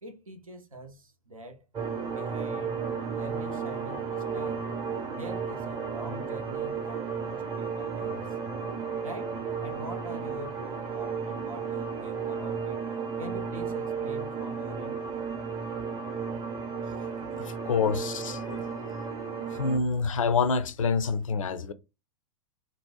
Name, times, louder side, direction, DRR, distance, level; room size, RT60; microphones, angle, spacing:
voice 1, 0.0-1.7 2.1-2.8 3.1-4.7 5.1-8.6 9.0-12.8 13.2-15.0, right 1 dB, 85° right, 0.7 m, -44 dB
sound 1, 1.7-19.8, right 5 dB, 20° right, 0.7 m, -33 dB
voice 2, 17.4-18.6 19.6-21.7, left 5 dB, 75° left, 0.4 m, -27 dB
2.6 x 2.0 x 3.7 m
figure-of-eight pair, 95°, 17 cm